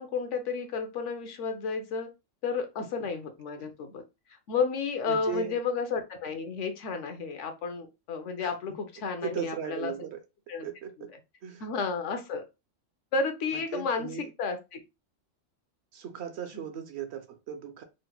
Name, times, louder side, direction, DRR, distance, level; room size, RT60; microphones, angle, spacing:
voice 1, 0.0-2.1 2.4-4.0 4.5-9.9 10.5-10.7 11.6-12.4 13.1-14.8, left 5 dB, 70° left, 1.0 m, -32 dB
voice 2, 5.1-5.6 8.4-8.6 9.2-10.2 10.6-11.1 11.4-11.7 13.5-14.3 15.9-17.8, right 8 dB, 65° right, 0.8 m, -37 dB
3.8 x 2.1 x 2.8 m
omnidirectional pair, 1.3 m